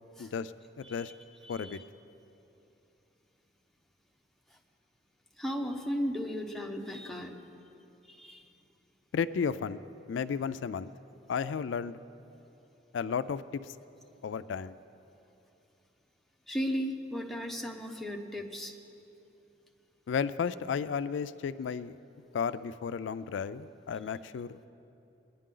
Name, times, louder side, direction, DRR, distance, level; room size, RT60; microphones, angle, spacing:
voice 1, 0.2-0.5 0.8-1.1 1.5-1.8 9.1-9.8 10.1-10.9 11.3-12.0 12.9-13.7 14.2-14.7 20.1-21.9 22.3-24.6, left 6 dB, 90° left, 14 dB, 0.4 m, -33 dB
voice 2, 0.8-1.1 1.4-1.8 5.4-7.4 8.1-8.4 16.5-18.7, equal, ahead, 0 dB, 0.9 m, -35 dB
22.0 x 10.5 x 3.8 m, 2.9 s
head